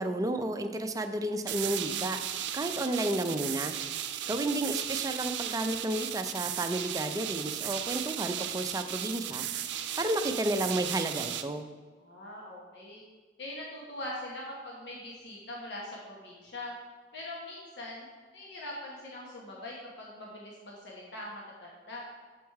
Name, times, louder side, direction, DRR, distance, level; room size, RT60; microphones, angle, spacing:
voice 1, 0.0-2.2 2.5-9.5 10.0-11.6, right 1 dB, 20° right, 6 dB, 0.4 m, -32 dB
sound 1, 1.5-11.4, right 10 dB, 80° right, 0.4 m, -35 dB
voice 2, 12.0-13.0 13.4-16.7 17.1-18.1 18.3-22.1, left 1 dB, 75° left, -3 dB, 1.2 m, -42 dB
7.1 x 4.6 x 4.7 m, 1.4 s
head